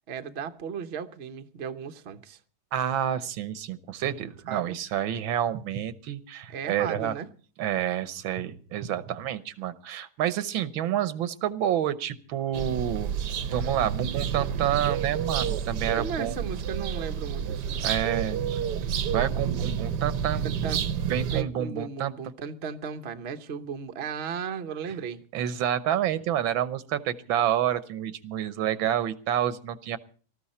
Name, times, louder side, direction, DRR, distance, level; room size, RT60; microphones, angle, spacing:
voice 1, 0.1-2.4 4.5-4.8 6.5-7.3 16.0-17.9 20.4-20.8 21.3-25.2, right 6 dB, 45° right, 0.9 m, -35 dB
voice 2, 2.7-7.1 7.6-13.1 13.5-16.4 17.8-20.5 21.1-22.1 25.3-30.0, right 10 dB, 85° right, 1.7 m, -29 dB
sound 1, 12.5-21.4, right 8 dB, 65° right, 1.3 m, -30 dB
19.0 x 14.0 x 4.2 m
omnidirectional pair, 2.1 m